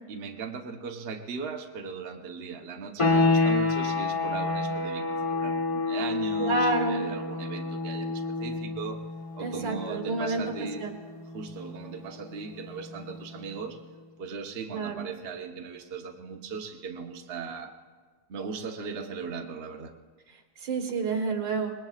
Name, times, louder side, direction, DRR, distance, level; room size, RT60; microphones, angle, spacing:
voice 1, 0.1-9.0 9.3-10.9 11.3-13.8 14.2-17.8 18.3-19.9, right 5 dB, 40° right, 2 dB, 1.0 m, -38 dB
sound 1, 3.0-13.5, left 3 dB, 20° left, 1.0 m, -29 dB
voice 2, 6.4-7.1 9.4-10.4 10.8-10.9 14.7-15.1 20.6-21.7, right 3 dB, 75° right, 4 dB, 2.1 m, -29 dB
26.0 x 20.0 x 2.4 m, 1.4 s
omnidirectional pair, 2.0 m